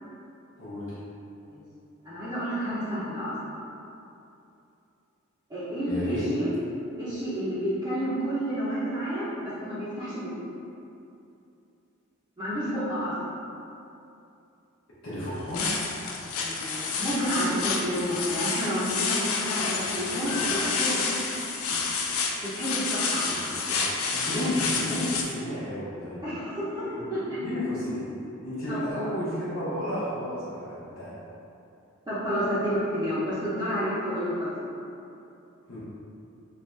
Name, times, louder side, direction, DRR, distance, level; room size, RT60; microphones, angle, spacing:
voice 1, 0.6-1.0 5.9-6.3 15.0-15.7 23.2-23.8 24.1-26.2 26.9-28.1 28.4-31.2 35.7-35.8, left 1 dB, 70° left, -12 dB, 0.8 m, -32 dB
voice 2, 2.0-3.6 5.5-6.5 7.0-10.5 12.4-13.3 16.4-21.0 22.5-23.3 26.2-27.6 28.7-28.8 32.1-34.7, equal, 20° right, -14 dB, 0.6 m, -30 dB
sound 1, 15.3-25.2, left 4 dB, 90° left, 0.4 m, -29 dB
3.2 x 2.4 x 3.1 m, 2.7 s
head